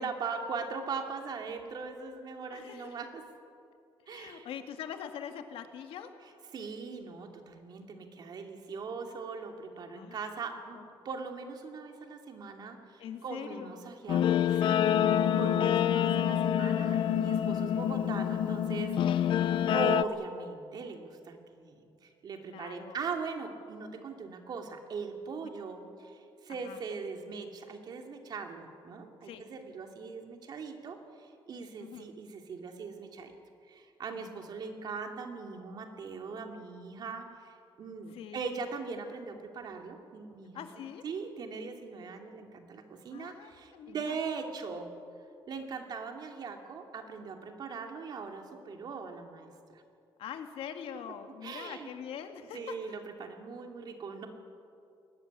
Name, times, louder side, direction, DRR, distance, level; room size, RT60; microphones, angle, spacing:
voice 1, 0.0-3.2 4.1-4.5 6.5-10.8 11.0-19.4 19.7-33.3 33.7-44.9 45.5-49.8 51.4-51.9 52.5-54.3, right 5 dB, 50° right, 4 dB, 2.7 m, -40 dB
voice 2, 2.5-3.0 4.1-6.1 9.9-10.2 10.7-10.9 13.0-13.8 19.6-19.8 22.4-23.0 26.6-26.8 29.2-29.4 31.8-32.1 34.1-34.5 38.1-38.4 40.5-41.0 43.1-44.2 50.2-52.7, left 8 dB, 85° left, 6 dB, 2.0 m, -43 dB
Guitar, 14.1-20.0, left 9 dB, 65° left, 0.8 m, -27 dB
21.0 x 18.0 x 9.8 m, 2.4 s
cardioid pair, 160°, 9 cm